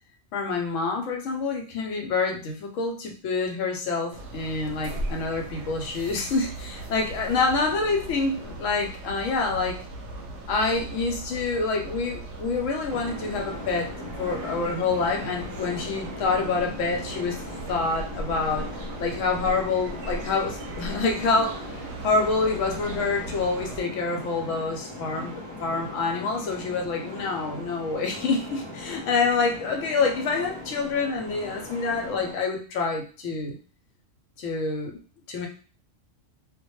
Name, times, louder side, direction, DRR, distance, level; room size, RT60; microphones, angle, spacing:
voice 1, 0.3-9.8 10.5-13.9 14.2-17.4 17.7-18.7 19.0-25.3 25.6-33.6 34.4-35.0 35.3-35.5, left 4 dB, 75° left, 2 dB, 0.9 m, -27 dB
sound 1, 4.1-23.8, right 2 dB, 65° right, 0.8 m, -38 dB
sound 2, 12.9-32.3, left 1 dB, 25° right, 0.6 m, -39 dB
2.2 x 2.1 x 2.9 m, 0.38 s
omnidirectional pair, 1.4 m